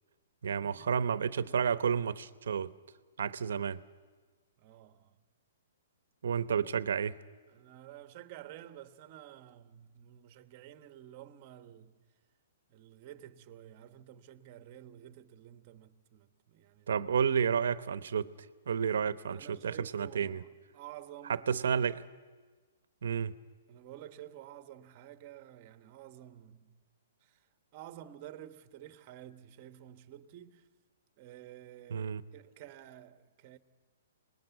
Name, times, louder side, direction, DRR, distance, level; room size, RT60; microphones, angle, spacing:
voice 1, 0.4-2.7 3.2-3.8 6.2-7.2 16.9-18.3 18.7-20.4 21.3-22.1 23.0-23.3 31.9-32.2, right 7 dB, 75° right, 1.0 m, -31 dB
voice 2, 4.6-5.1 7.5-12.0 12.7-17.0 19.3-21.6 23.7-26.8 27.2-27.4 27.7-30.7 31.2-33.6, right 12 dB, 35° right, 1.3 m, -51 dB
26.5 x 20.5 x 8.2 m
hypercardioid pair, 150°, 0 cm